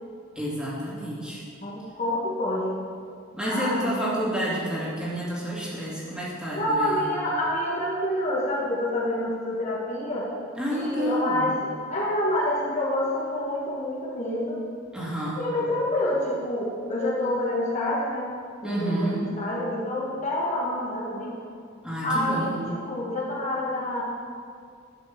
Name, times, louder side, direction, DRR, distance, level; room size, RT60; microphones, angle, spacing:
voice 1, 0.4-1.4 3.3-7.0 10.6-11.4 14.9-15.4 18.6-19.3 21.8-22.6, right 1 dB, 5° right, -7 dB, 2.5 m, -29 dB
voice 2, 1.6-2.8 3.5-4.1 6.5-10.3 10.7-14.6 15.4-18.3 18.6-21.4 22.0-24.0, left 1 dB, 35° left, -5 dB, 1.5 m, -27 dB
11.0 x 5.9 x 7.2 m, 2.2 s
head